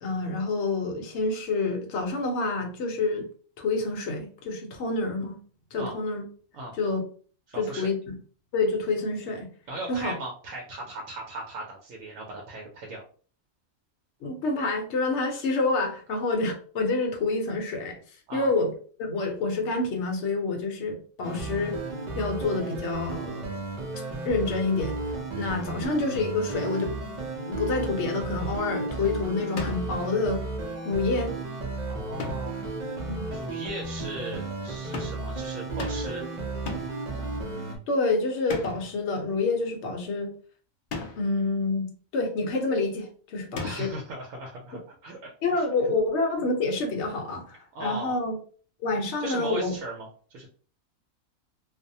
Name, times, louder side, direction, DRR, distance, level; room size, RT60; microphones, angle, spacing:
voice 1, 0.0-3.3 3.6-5.4 5.7-6.2 6.8-7.0 7.6-8.1 8.5-9.5 9.9-10.1 14.2-18.0 18.3-18.7 19.0-21.8 22.1-23.4 24.2-25.0 25.3-26.9 27.5-30.4 30.8-31.3 33.0-33.3 37.9-40.3 41.2-43.9 45.4-48.4 48.8-49.7, left 3 dB, 60° left, 2 dB, 0.9 m, -28 dB
voice 2, 7.5-7.9 9.7-13.0 18.3-18.5 31.9-32.8 33.3-36.3 43.6-45.6 47.7-48.2 49.2-50.5, right 2 dB, 75° right, 0 dB, 0.9 m, -38 dB
sound 1, 21.2-37.8, right 3 dB, 90° right, 0.3 m, -34 dB
sound 2, 29.6-30.0 32.2-32.6 34.9-35.3 35.8-36.2 36.7-37.1 38.5-39.0 40.9-41.4 43.6-44.1, left 3 dB, 80° left, 0.4 m, -36 dB
2.5 x 2.0 x 2.6 m, 0.43 s
omnidirectional pair, 1.5 m